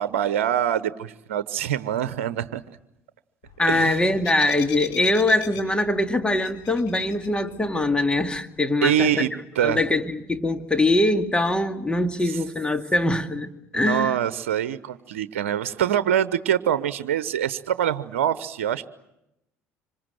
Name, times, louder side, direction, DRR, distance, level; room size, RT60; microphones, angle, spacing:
voice 1, 0.0-2.6 3.6-4.1 8.8-9.8 12.2-12.4 13.7-18.9, right 10 dB, 80° right, 14 dB, 0.9 m, -25 dB
sound 1, 3.4-8.4, left 9 dB, 60° left, 4.7 m, -42 dB
voice 2, 3.6-9.1 9.6-14.2, left 2 dB, 15° left, 7 dB, 2.1 m, -23 dB
26.0 x 25.5 x 7.7 m, 0.86 s
hypercardioid pair, 65°, 7 cm